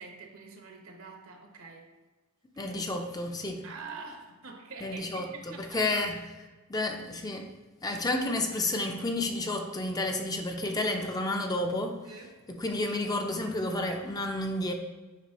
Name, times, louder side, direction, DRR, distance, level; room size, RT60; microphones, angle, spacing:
voice 1, 0.0-1.9 3.6-5.8 12.0-12.4, right 4 dB, 75° right, 1.1 m, -45 dB
voice 2, 2.6-3.6 4.8-5.3 5.7-6.3 6.7-7.5 7.8-12.0 12.5-14.7, left 2 dB, 20° left, 0.5 m, -31 dB
8.2 x 5.2 x 2.9 m
head